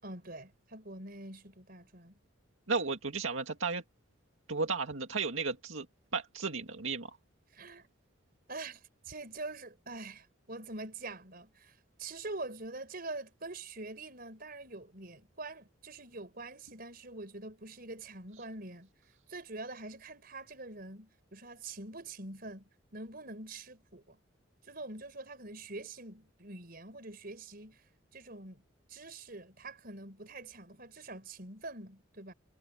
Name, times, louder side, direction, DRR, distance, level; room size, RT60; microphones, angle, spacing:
voice 1, 0.0-2.1 7.5-7.9 8.5-18.9 19.3-24.2 24.6-27.8 28.1-28.6 28.9-32.3, right 2 dB, 45° right, 5.1 m, -45 dB
voice 2, 2.7-3.8 4.5-5.9 6.1-7.2, right 4 dB, 80° right, 2.1 m, -34 dB
head